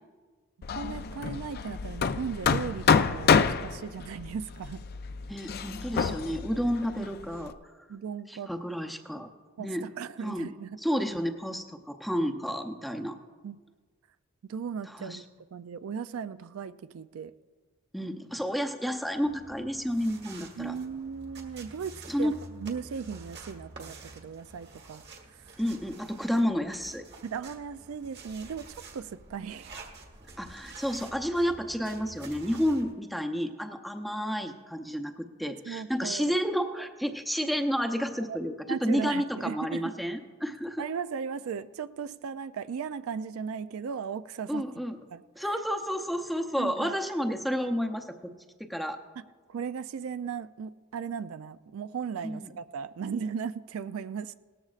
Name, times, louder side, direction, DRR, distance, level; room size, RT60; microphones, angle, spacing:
Hammer, 0.6-7.5, left 6 dB, 45° left, 0.4 m, -28 dB
voice 1, 0.7-4.9 7.0-7.1 7.9-8.5 9.6-10.8 13.4-13.6 14.5-15.2 15.5-17.3 20.6-25.0 25.3-25.5 27.2-29.7 35.7-36.3 38.1-38.4 38.7-39.9 40.8-44.6 45.1-45.5 46.6-47.0 49.5-54.3, right 6 dB, 70° right, 13 dB, 0.4 m, -37 dB
voice 2, 5.3-7.5 8.3-9.3 9.6-9.9 10.2-10.5 10.8-13.2 14.9-15.2 17.9-20.7 22.1-22.3 25.6-27.0 30.4-40.8 44.5-45.0 45.4-48.3 48.6-49.0 52.2-52.5, equal, ahead, 4 dB, 0.6 m, -31 dB
sound 1, 19.2-32.9, right 3 dB, 50° right, 1.5 m, -48 dB
18.5 x 13.5 x 2.5 m, 1.5 s
head